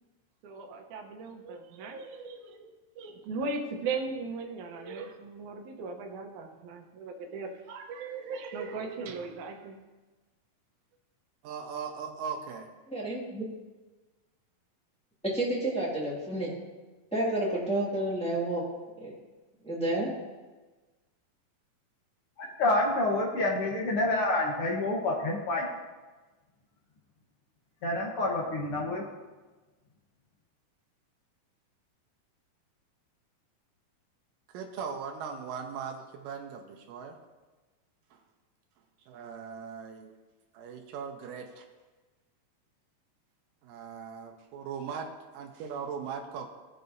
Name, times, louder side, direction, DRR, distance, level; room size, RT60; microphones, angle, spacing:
voice 1, 0.4-9.8, right 4 dB, 70° right, 3 dB, 2.2 m, -38 dB
voice 2, 11.4-12.7 34.5-37.2 38.1-38.2 39.1-40.1 40.5-41.7 43.6-46.5, right 6 dB, 85° right, 2 dB, 2.5 m, -39 dB
voice 3, 12.9-13.5 15.2-16.5 17.1-18.6 19.0-19.1 19.6-20.1, right 1 dB, 5° left, -6 dB, 1.0 m, -30 dB
voice 4, 22.4-25.7 27.8-29.0, left 2 dB, 60° left, -1 dB, 1.5 m, -28 dB
15.5 x 6.7 x 2.7 m, 1.2 s
omnidirectional pair, 3.9 m